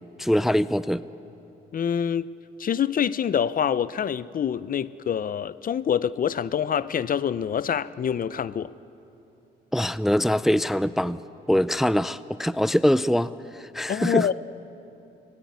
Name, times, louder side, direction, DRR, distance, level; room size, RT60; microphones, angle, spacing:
voice 1, 0.2-1.0 9.7-11.2 11.5-14.3, equal, ahead, 0.4 m, -23 dB
voice 2, 1.7-2.3 2.6-8.7 13.9-14.3, left 8 dB, 45° left, 0.6 m, -26 dB
24.0 x 19.0 x 9.3 m
cardioid pair, 90°, 20 cm